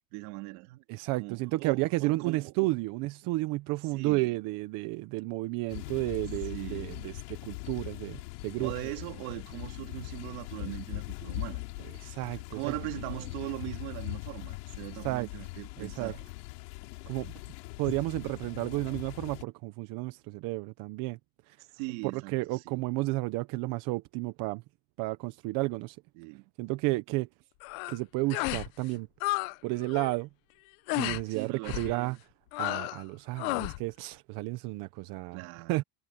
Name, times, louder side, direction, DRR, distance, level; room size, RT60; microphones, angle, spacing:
voice 1, 0.1-0.8 1.2-2.5 3.9-4.3 6.5-7.0 8.6-11.9 12.5-16.3 21.7-22.8 26.2-26.5 31.3-32.2 35.3-35.8, right 23 dB, 60° right, 2.3 m, -40 dB
voice 2, 0.9-8.7 12.0-12.7 15.0-15.3 15.8-16.1 17.1-17.3 17.8-21.2 21.5-21.6 22.1-24.6 25.0-26.0 26.6-27.3 27.9-29.1 29.6-30.3 30.9-32.2 32.6-35.8, right 21 dB, 40° right, 0.8 m, -32 dB
sound 1, 5.7-19.4, left 24 dB, 70° left, 4.4 m, -41 dB
sound 2, 27.6-28.0 28.3-28.7 29.0-29.5 29.8-30.2 30.9-31.2 31.6-31.9 32.5-33.0 33.4-33.8, left 24 dB, 50° left, 0.8 m, -32 dB
supercardioid pair, 155°, 49 cm